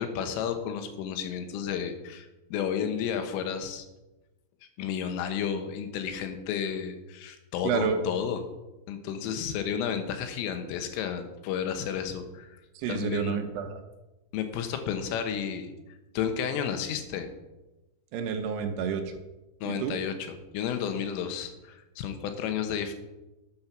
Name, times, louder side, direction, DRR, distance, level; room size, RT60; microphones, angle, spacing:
voice 1, 0.0-3.9 4.8-8.4 8.9-12.6 12.9-13.4 14.3-15.7 16.2-17.3 19.6-22.9, left 8 dB, 90° left, 7 dB, 3.8 m, -32 dB
voice 2, 7.6-8.0 12.8-13.8 18.1-19.2 19.6-19.9, right 7 dB, 75° right, 6 dB, 2.6 m, -30 dB
12.5 x 7.7 x 5.9 m, 1.0 s
omnidirectional pair, 5.7 m